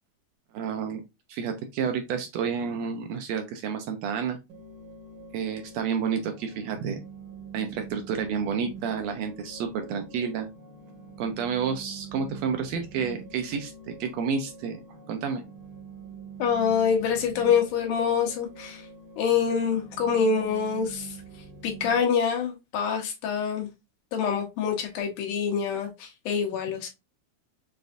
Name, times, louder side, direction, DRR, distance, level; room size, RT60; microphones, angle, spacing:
voice 1, 0.5-1.0 1.3-4.4 5.3-7.0 7.5-10.5 11.2-13.7 14.0-14.8 15.1-15.4, right 6 dB, 85° right, 1.5 m, -30 dB
sound 1, 4.5-21.9, right 4 dB, 60° right, 1.2 m, -45 dB
voice 2, 16.4-18.8 19.2-21.2 21.6-23.7 24.1-26.9, left 6 dB, 90° left, 2.6 m, -26 dB
6.7 x 2.5 x 2.5 m
omnidirectional pair, 3.6 m